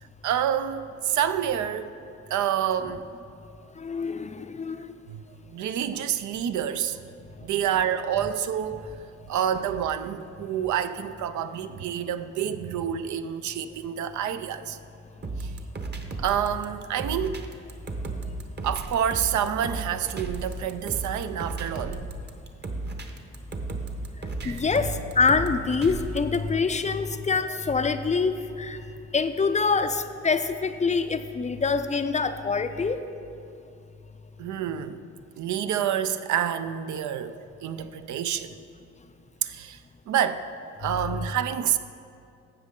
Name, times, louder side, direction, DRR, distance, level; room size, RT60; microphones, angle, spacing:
voice 1, 0.2-1.9 2.3-3.0 5.1-5.2 5.5-7.0 7.4-8.9 9.3-14.8 15.4-15.5 16.2-17.4 18.6-22.0 24.4-24.6 34.4-35.0 35.4-38.6 39.4-39.8 40.1-40.5 40.8-41.8, right 9 dB, 70° right, 0.5 m, -28 dB
voice 2, 3.8-4.9 24.4-28.8 29.1-33.0 41.0-41.2, left 4 dB, 25° left, 0.4 m, -25 dB
sound 1, 15.2-26.4, right 3 dB, 35° right, 1.0 m, -34 dB
12.5 x 7.4 x 3.7 m
cardioid pair, 90°, 30 cm